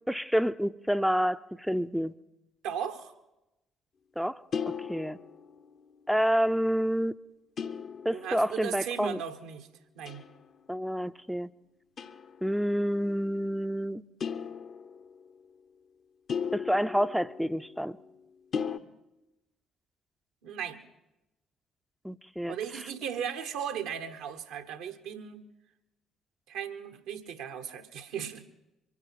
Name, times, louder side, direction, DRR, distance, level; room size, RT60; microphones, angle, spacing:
voice 1, 0.1-2.1 4.2-5.2 6.1-7.1 8.0-9.2 10.7-11.5 12.4-14.0 16.5-18.0 22.0-22.6, equal, ahead, 13 dB, 0.6 m, -28 dB
voice 2, 2.6-3.1 8.1-9.7 10.0-10.2 20.4-20.8 22.5-25.4 26.5-28.5, right 8 dB, 70° right, 6 dB, 1.3 m, -36 dB
sound 1, 4.5-5.8 7.6-8.7 10.1-10.5 12.0-12.4 14.2-15.3 16.3-18.0 18.5-18.8, left 6 dB, 50° left, 0.9 m, -36 dB
24.5 x 9.2 x 5.9 m, 0.94 s
figure-of-eight pair, 50°, 0 cm